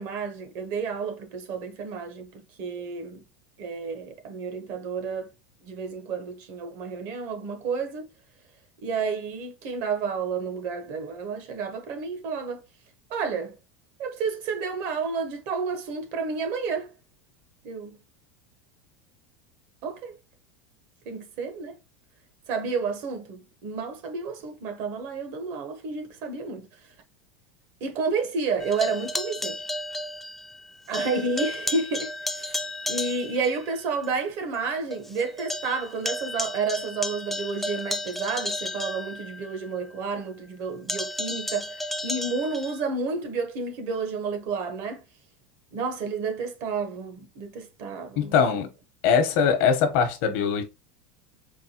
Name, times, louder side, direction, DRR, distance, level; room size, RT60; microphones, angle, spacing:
voice 1, 0.0-3.2 3.6-5.3 5.6-8.1 8.8-12.6 13.1-13.6 14.0-16.9 17.6-18.0 19.8-20.2 21.0-21.8 22.5-26.7 27.8-29.6 30.9-45.0 45.7-48.7, right 4 dB, 55° right, 0.9 m, -31 dB
sound 1, 28.6-30.7 30.9-33.6 34.0-34.1 34.6-34.7 34.9-39.7 40.9-42.8, left 1 dB, 5° left, 0.4 m, -33 dB
voice 2, 48.2-48.7 49.0-50.6, left 6 dB, 65° left, 0.9 m, -22 dB
4.5 x 2.3 x 2.8 m
supercardioid pair, 125°, 6 cm